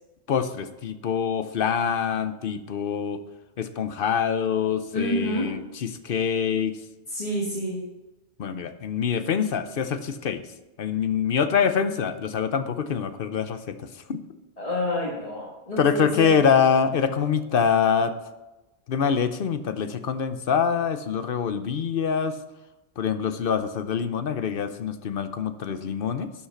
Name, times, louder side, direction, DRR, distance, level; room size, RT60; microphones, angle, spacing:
voice 1, 0.3-3.2 3.6-6.8 8.4-10.4 10.8-14.2 15.8-18.1 18.9-22.4 23.0-26.3, left 7 dB, 60° left, 10 dB, 0.8 m, -25 dB
voice 2, 4.9-5.5 7.1-7.8 14.6-16.4, equal, 35° left, -4 dB, 1.8 m, -28 dB
11.5 x 5.7 x 5.8 m, 1.1 s
omnidirectional pair, 1.1 m